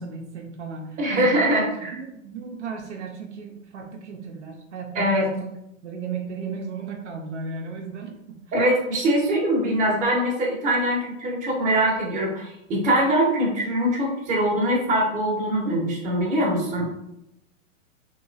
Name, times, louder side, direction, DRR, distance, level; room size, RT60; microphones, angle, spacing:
voice 1, 0.0-1.4 1.8-5.5 5.8-8.6, right 5 dB, 60° right, 1 dB, 0.6 m, -35 dB
voice 2, 1.0-1.9 4.9-5.2 8.5-16.9, right 1 dB, 20° right, -3 dB, 0.8 m, -23 dB
3.0 x 2.4 x 2.4 m, 0.84 s
figure-of-eight pair, 110°, 40 cm